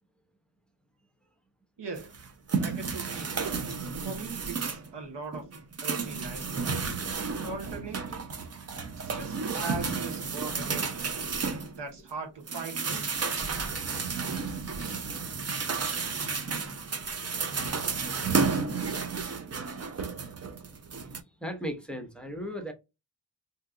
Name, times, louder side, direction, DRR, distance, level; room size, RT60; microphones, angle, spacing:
voice 1, 1.8-2.1 2.6-3.6 4.0-5.4 5.8-6.8 7.4-8.3 8.9-11.1 11.7-13.3, right 4 dB, 75° right, 1.0 m, -40 dB
sound 1, 2.0-4.9 5.3-12.1 12.5-21.2, right 5 dB, 35° right, 0.6 m, -32 dB
voice 2, 21.0-22.7, equal, ahead, 0.9 m, -38 dB
2.8 x 2.3 x 3.6 m
cardioid pair, 55°, 43 cm